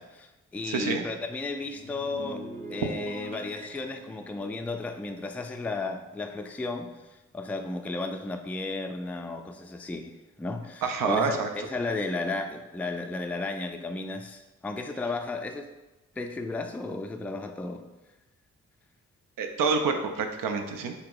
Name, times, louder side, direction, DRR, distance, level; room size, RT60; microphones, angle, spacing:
voice 1, 0.0-2.4 2.7-6.9 7.3-10.1 10.4-15.7 16.2-17.8, left 3 dB, 5° left, 5 dB, 0.3 m, -34 dB
voice 2, 0.6-1.0 10.8-11.5 19.4-20.9, right 5 dB, 75° right, 5 dB, 0.5 m, -27 dB
sound 1, 1.6-6.2 6.5-6.8, right 1 dB, 25° right, 0.7 m, -44 dB
2.9 x 2.8 x 3.7 m, 1.1 s
supercardioid pair, 40°, 33 cm